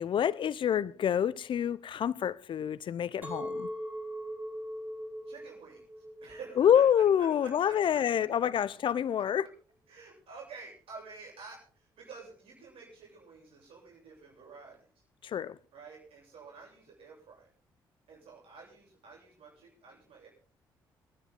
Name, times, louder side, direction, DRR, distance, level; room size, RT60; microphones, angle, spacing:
voice 1, 0.0-3.7 6.6-9.5 15.2-15.6, left 9 dB, 55° left, 0.7 m, -27 dB
Chink clink, 3.2-8.4, equal, 15° right, 6.0 m, -41 dB
voice 2, 5.3-6.9 7.2-8.5 9.2-9.3 9.9-14.8 15.7-17.5 18.1-20.3, right 4 dB, 65° right, 7.7 m, -50 dB
25.5 x 10.0 x 3.9 m
hypercardioid pair, 45°, 10 cm